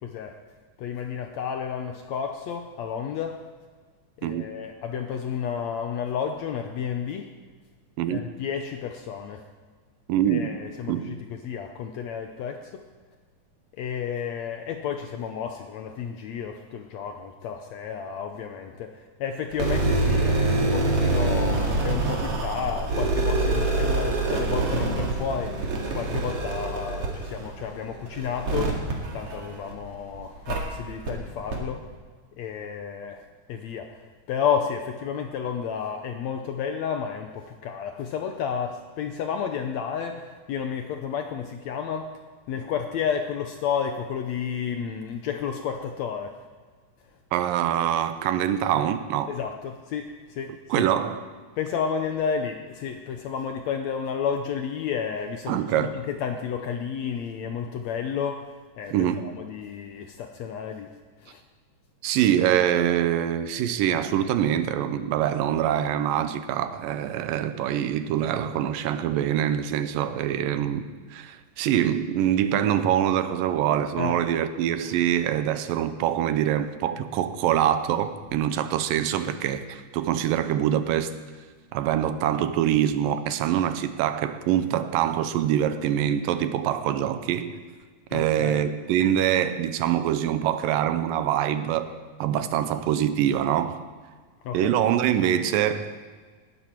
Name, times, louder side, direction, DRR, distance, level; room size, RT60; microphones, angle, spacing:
voice 1, 0.0-0.4 0.8-3.4 4.2-7.3 8.1-9.4 10.3-11.2 11.4-12.8 13.8-31.9 32.4-33.2 33.5-34.0 34.3-42.1 42.5-46.4 49.3-50.9 51.6-60.9 61.2-61.4 74.0-74.2 88.1-88.6 94.4-94.7, left 7 dB, 75° left, 1.7 m, -31 dB
voice 2, 10.1-10.5 10.9-11.1 47.3-49.4 50.5-51.2 55.5-56.0 58.9-59.3 62.0-81.1 81.7-87.6 88.1-91.9 92.2-93.8 94.5-96.0, right 10 dB, 90° right, 2.5 m, -24 dB
sound 1, 19.5-29.9 30.5-30.6 31.1-31.2 31.5-31.6, right 2 dB, 50° right, 2.8 m, -25 dB
19.0 x 11.0 x 4.5 m
omnidirectional pair, 3.9 m